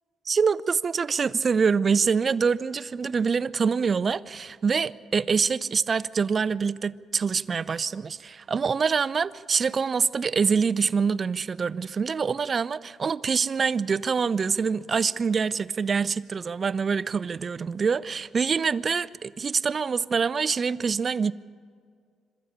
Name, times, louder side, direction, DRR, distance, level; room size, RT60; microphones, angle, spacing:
voice 1, 0.3-21.3, right 5 dB, 40° right, 17 dB, 0.5 m, -25 dB
26.5 x 13.5 x 8.8 m, 2.1 s
cardioid pair, 90°, 0 cm